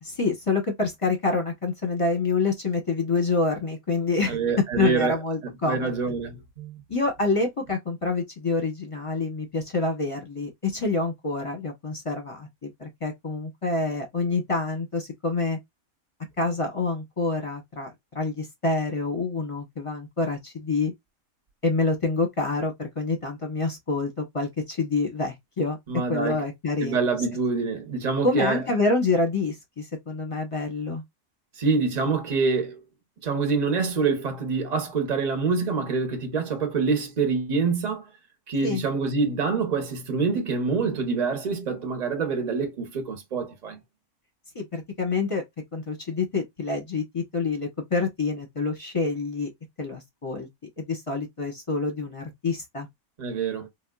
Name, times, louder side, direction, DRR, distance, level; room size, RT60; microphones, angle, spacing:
voice 1, 0.0-4.4 4.7-5.9 6.9-15.6 16.4-20.9 21.6-25.8 26.1-27.2 28.2-31.0 38.6-38.8 44.5-45.4 45.7-49.5 49.8-50.5 50.8-52.9, left 3 dB, 30° left, 0.7 m, -27 dB
voice 2, 4.3-5.2 5.4-6.8 25.9-26.4 26.8-28.6 31.6-32.8 33.2-38.0 38.5-43.8 53.2-53.7, right 4 dB, 35° right, 0.8 m, -26 dB
3.6 x 2.3 x 2.2 m
omnidirectional pair, 1.5 m